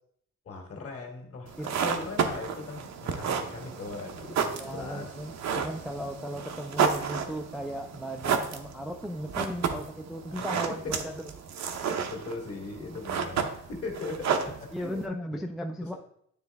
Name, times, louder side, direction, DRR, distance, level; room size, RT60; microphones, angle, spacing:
voice 1, 0.5-5.1 10.3-11.0 11.8-15.4 15.8-15.9, left 3 dB, 50° left, 2 dB, 1.7 m, -39 dB
sound 1, 1.5-15.1, right 6 dB, 65° right, 0.8 m, -32 dB
voice 2, 4.5-11.1 14.7-15.9, equal, ahead, 5 dB, 0.4 m, -36 dB
9.3 x 3.2 x 3.4 m, 0.69 s
cardioid pair, 90°, 30 cm